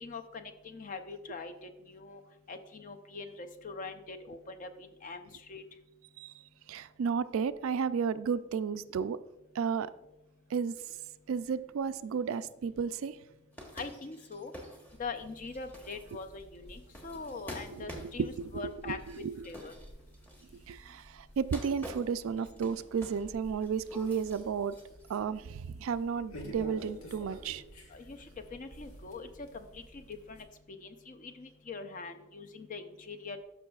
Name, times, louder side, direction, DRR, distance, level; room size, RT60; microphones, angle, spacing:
voice 1, 0.0-2.2 2.5-5.6 13.8-14.5 15.0-19.0 19.4-19.7 27.9-28.2 28.5-30.5 30.8-33.4, left 4 dB, 40° left, 0.5 m, -43 dB
voice 2, 6.7-9.2 9.6-9.9 10.5-10.7 11.3-13.2 17.7-19.0 19.2-19.3 20.7-24.8 25.1-27.6, right 6 dB, 70° right, 0.3 m, -33 dB
sound 1, 13.5-20.6 21.4-23.4 23.6-25.2, equal, 10° left, 1.0 m, -48 dB
sound 2, 14.9-30.4, equal, 90° left, 1.4 m, -52 dB
12.5 x 6.0 x 2.4 m
head